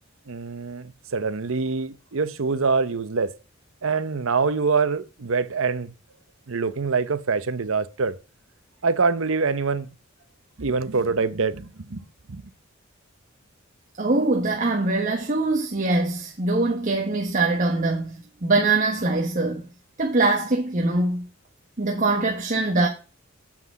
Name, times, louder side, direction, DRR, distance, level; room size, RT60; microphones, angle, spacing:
voice 1, 0.3-3.3 3.8-5.9 6.5-8.1 8.8-9.9 10.6-12.0 12.3-12.4, right 4 dB, 80° right, 0.8 m, -25 dB
voice 2, 14.0-19.6 20.0-21.3 21.8-22.9, right 2 dB, 40° right, 1.3 m, -23 dB
7.5 x 6.1 x 7.4 m
head